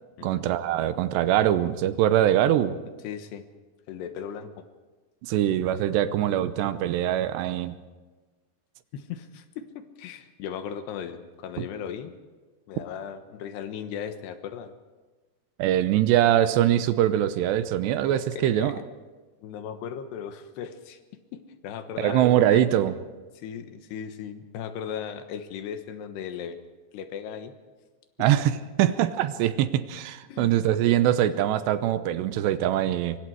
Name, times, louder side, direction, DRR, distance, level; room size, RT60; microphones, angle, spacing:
voice 1, 0.2-2.8 5.2-7.8 15.6-18.8 22.0-22.9 28.2-33.2, right 12 dB, 90° right, 12 dB, 3.1 m, -23 dB
voice 2, 3.0-3.4 3.9-4.6 8.9-12.1 12.7-14.7 18.3-18.8 19.4-21.0 21.3-22.3 22.5-22.7 23.4-26.6 26.9-27.5 30.3-30.5, left 8 dB, 80° left, 8 dB, 3.4 m, -37 dB
24.5 x 24.0 x 4.8 m, 1.3 s
omnidirectional pair, 4.8 m